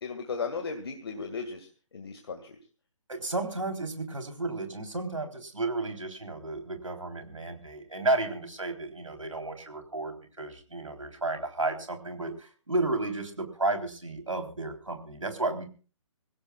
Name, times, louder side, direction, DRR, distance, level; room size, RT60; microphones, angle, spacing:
voice 1, 0.0-1.7 1.9-2.6, left 5 dB, 50° left, 4 dB, 2.1 m, -36 dB
voice 2, 3.1-15.7, right 2 dB, 75° right, 5 dB, 3.8 m, -32 dB
26.0 x 16.0 x 2.4 m, 0.37 s
figure-of-eight pair, 140°, 17 cm